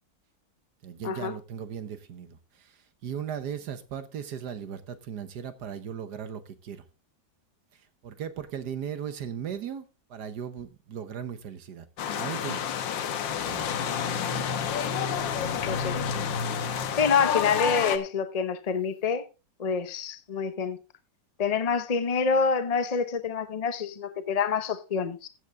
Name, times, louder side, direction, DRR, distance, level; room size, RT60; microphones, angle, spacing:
voice 1, 0.8-6.8 7.7-12.6 13.3-13.6 15.3-15.7, right 8 dB, 65° right, 1.5 m, -38 dB
sound 1, 12.0-18.0, left 7 dB, 80° left, 1.7 m, -29 dB
voice 2, 15.6-16.0 16.9-19.2 19.6-20.8 21.4-25.3, left 6 dB, 55° left, 0.4 m, -27 dB
14.5 x 8.1 x 3.4 m
omnidirectional pair, 2.0 m